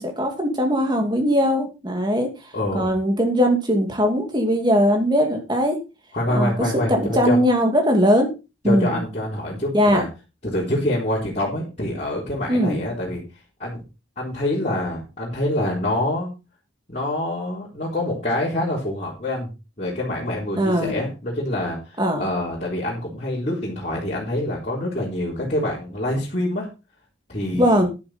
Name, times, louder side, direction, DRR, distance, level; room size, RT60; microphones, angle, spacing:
voice 1, 0.0-2.3 2.7-5.8 6.3-8.3 8.6-9.0 9.7-10.0 12.5-12.8 20.6-21.0 22.0-22.3 27.6-27.9, equal, 20° right, 3 dB, 2.6 m, -20 dB
voice 2, 2.5-2.9 6.1-7.4 8.7-10.1 10.4-13.2 13.6-13.8 14.2-16.3 16.9-19.5 19.8-26.7 27.3-27.9, left 1 dB, 35° left, -7 dB, 3.9 m, -26 dB
11.5 x 9.9 x 4.4 m, 0.30 s
head